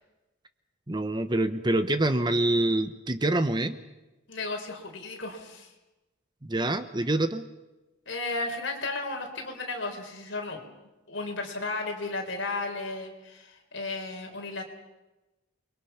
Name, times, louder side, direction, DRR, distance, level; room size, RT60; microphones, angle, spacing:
voice 1, 0.9-3.8 6.4-7.4, right 1 dB, 20° right, 10 dB, 0.9 m, -26 dB
voice 2, 4.3-5.7 8.1-10.6 11.1-14.6, left 3 dB, 60° left, 3 dB, 4.3 m, -34 dB
29.0 x 22.0 x 5.8 m, 1.0 s
head